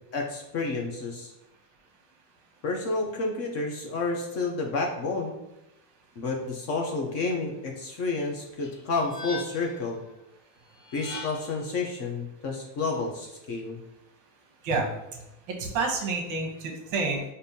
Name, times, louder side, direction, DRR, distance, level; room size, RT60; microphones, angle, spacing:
voice 1, 0.1-1.3 2.6-5.3 6.2-10.0 10.9-13.8, left 3 dB, 35° left, 1 dB, 0.5 m, -30 dB
sound 1, 8.6-9.8 10.8-11.6, left 3 dB, 65° left, 1.2 m, -40 dB
voice 2, 14.6-17.2, right 3 dB, 45° right, 2 dB, 0.9 m, -29 dB
5.1 x 2.6 x 2.7 m, 0.92 s
supercardioid pair, 150°, 44 cm